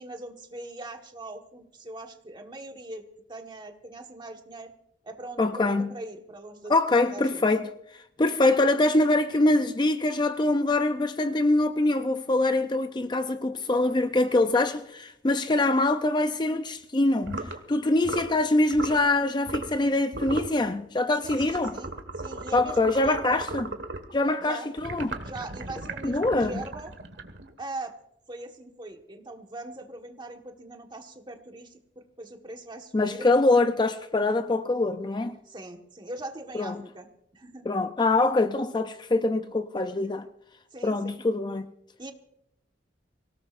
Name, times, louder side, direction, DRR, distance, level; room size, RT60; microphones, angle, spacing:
voice 1, 0.0-3.0 3.3-4.7 5.0-6.7 7.0-7.5 21.2-23.4 24.4-24.7 25.2-26.9 27.6-27.9 28.3-33.3 35.4-37.1 37.3-37.7 40.7-41.2 42.0-42.1, right 2 dB, 25° right, 1.5 m, -41 dB
voice 2, 5.4-5.9 6.7-7.7 7.9-21.8 22.5-23.7 24.1-25.2 26.0-26.6 32.9-35.4 36.5-36.8 37.7-40.3 40.8-41.7, left 2 dB, 25° left, 0.5 m, -24 dB
sound 1, 17.2-17.6 18.0-18.4 18.7-19.0 19.5-19.8 20.1-20.6 21.2-24.1 24.8-27.6, right 2 dB, 75° right, 1.6 m, -36 dB
24.5 x 18.0 x 2.5 m
head